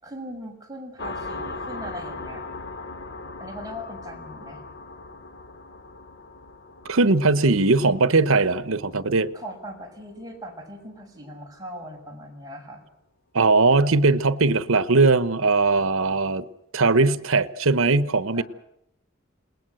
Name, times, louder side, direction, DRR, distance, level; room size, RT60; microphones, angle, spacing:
voice 1, 0.0-2.4 3.4-4.6 9.3-12.8 18.3-18.4, equal, 20° right, 6.1 m, -39 dB
sound 1, 1.0-10.2, left 3 dB, 55° left, 1.1 m, -39 dB
voice 2, 6.8-9.3 13.3-16.4 16.7-18.4, right 3 dB, 85° right, 1.1 m, -20 dB
28.0 x 20.0 x 7.9 m
head